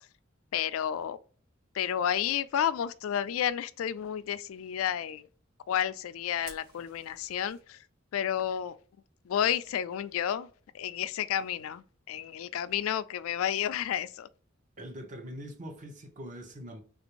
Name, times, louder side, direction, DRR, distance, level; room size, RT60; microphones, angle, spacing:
voice 1, 0.5-1.2 1.7-5.3 5.7-7.8 8.1-8.8 9.3-10.5 10.7-14.3, left 9 dB, 90° left, 0.3 m, -31 dB
Fire, 6.4-7.6, right 3 dB, 65° right, 1.4 m, -51 dB
voice 2, 14.8-16.8, equal, 40° right, 0.8 m, -43 dB
3.4 x 2.5 x 2.9 m
head